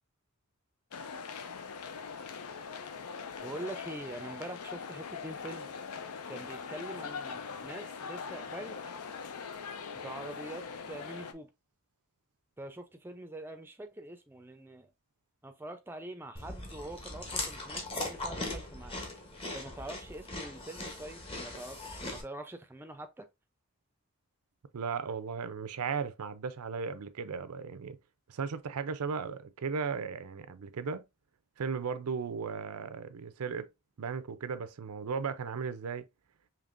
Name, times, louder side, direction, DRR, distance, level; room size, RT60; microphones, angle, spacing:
sound 1, 0.9-11.3, left 5 dB, 85° left, 0.5 m, -42 dB
voice 1, 3.4-5.7 6.3-8.8 9.9-11.5 12.6-14.9 15.4-19.0 19.5-23.3, right 1 dB, 10° right, 0.5 m, -44 dB
Chewing mastication, 16.4-22.2, left 2 dB, 25° left, 0.9 m, -39 dB
voice 2, 24.7-28.0 28.3-31.0 31.6-33.7 34.0-36.1, right 5 dB, 85° right, 0.5 m, -36 dB
5.1 x 2.9 x 2.5 m
head